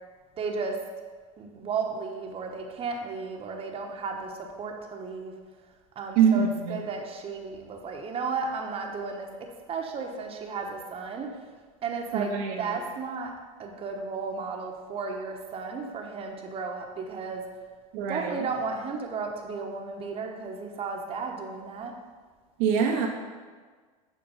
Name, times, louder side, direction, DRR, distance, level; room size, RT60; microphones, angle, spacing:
voice 1, 0.4-0.8 1.4-5.3 5.9-11.3 11.8-13.3 13.6-17.5 18.1-21.9, right 4 dB, 30° right, 2 dB, 1.2 m, -34 dB
voice 2, 6.2-6.8 12.1-12.8 17.9-18.4 22.6-23.1, right 7 dB, 60° right, 1 dB, 0.9 m, -24 dB
7.1 x 4.6 x 5.5 m, 1.5 s
hypercardioid pair, 100°, 18 cm